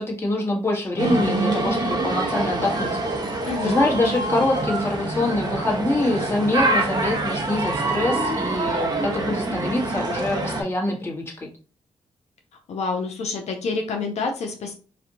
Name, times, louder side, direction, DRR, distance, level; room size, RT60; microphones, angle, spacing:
voice 1, 0.0-3.1 3.6-11.5, left 2 dB, 25° left, -1 dB, 1.4 m, -25 dB
sound 1, 1.0-10.6, right 2 dB, 40° right, 1.1 m, -25 dB
voice 2, 3.4-3.8 12.7-14.7, left 4 dB, 80° left, 4 dB, 0.6 m, -28 dB
4.2 x 2.5 x 2.8 m, 0.36 s
cardioid pair, 60°, 11 cm